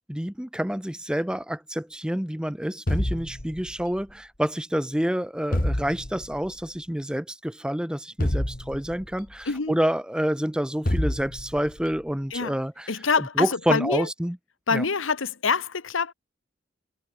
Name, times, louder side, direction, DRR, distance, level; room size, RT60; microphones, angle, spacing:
voice 1, 0.1-12.9 13.4-14.4 14.7-14.8, equal, 5° right, 0.7 m, -28 dB
sound 1, 2.9-4.0 5.5-6.5 8.2-9.3 10.9-11.8, left 1 dB, 45° left, 2.4 m, -28 dB
voice 2, 9.4-9.8 12.3-12.6 12.9-14.1 14.7-16.1, left 5 dB, 85° left, 1.2 m, -25 dB
head